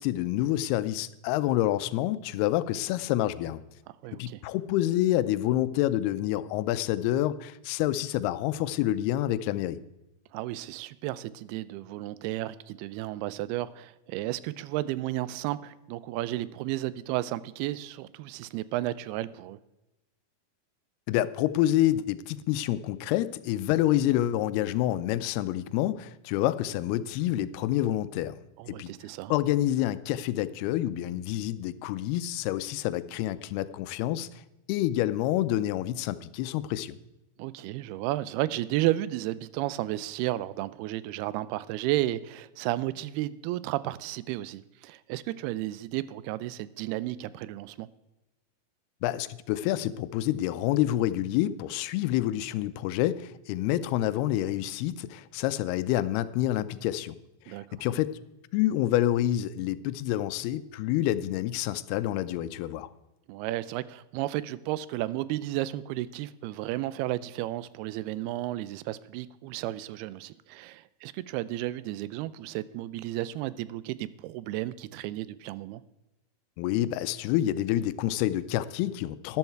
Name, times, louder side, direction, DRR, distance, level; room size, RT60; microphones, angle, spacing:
voice 1, 0.0-3.6 4.2-9.8 21.1-28.4 28.7-28.9 29.3-34.3 34.7-37.0 49.0-57.2 57.5-58.2 58.5-62.9 76.6-79.4, left 13 dB, 85° left, 15 dB, 2.6 m, -28 dB
voice 2, 4.0-4.4 10.3-19.6 28.6-29.3 37.4-47.9 57.5-57.7 63.3-75.8, right 15 dB, 85° right, 18 dB, 2.5 m, -33 dB
13.0 x 11.0 x 4.6 m, 0.97 s
omnidirectional pair, 4.5 m